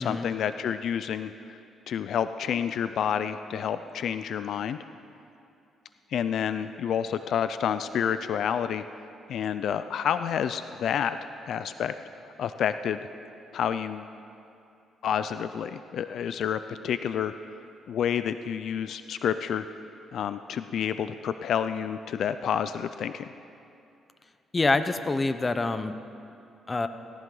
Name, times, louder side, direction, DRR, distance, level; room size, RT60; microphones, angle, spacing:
voice 1, 0.0-1.6 1.9-4.8 6.1-8.8 9.3-11.2 11.5-12.0 12.4-13.0 13.5-14.1 15.0-17.3 17.9-19.7 20.1-23.3, left 8 dB, 70° left, 11 dB, 0.4 m, -29 dB
voice 2, 24.5-25.9 26.7-26.9, left 3 dB, 25° left, 10 dB, 0.8 m, -26 dB
17.5 x 16.0 x 3.9 m, 2.6 s
cardioid pair, 90°, 0 cm